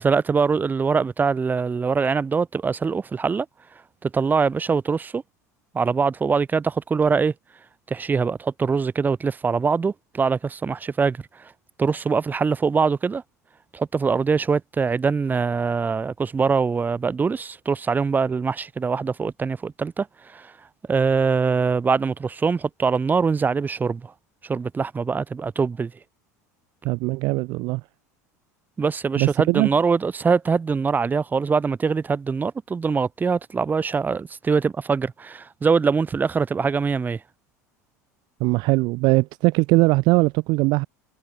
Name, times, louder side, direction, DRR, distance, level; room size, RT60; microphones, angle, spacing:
voice 1, 0.0-3.5 4.0-5.2 5.7-7.3 7.9-11.5 11.8-13.2 13.7-20.5 20.9-24.1 24.4-25.9 28.8-37.2, right 5 dB, 20° right, 0.8 m, -23 dB
voice 2, 26.8-27.8 29.2-29.7 38.4-40.9, right 24 dB, 55° right, 0.4 m, -20 dB
hypercardioid pair, 75°, 9 cm